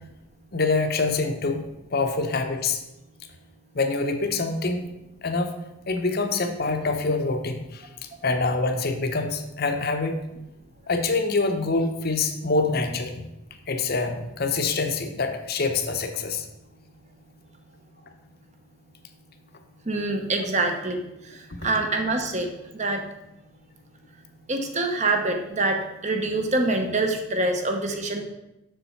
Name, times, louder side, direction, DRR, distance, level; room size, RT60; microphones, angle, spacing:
voice 1, 0.5-1.6 1.9-2.8 3.7-4.8 5.2-5.5 5.9-7.9 8.2-10.2 10.9-13.3 13.7-16.4 20.4-20.5 21.6-21.7, left 3 dB, 45° left, 6 dB, 0.8 m, -25 dB
voice 2, 19.9-21.0 21.6-23.0 24.5-28.2, right 2 dB, 35° right, 4 dB, 0.9 m, -25 dB
6.9 x 6.7 x 4.5 m, 0.91 s
head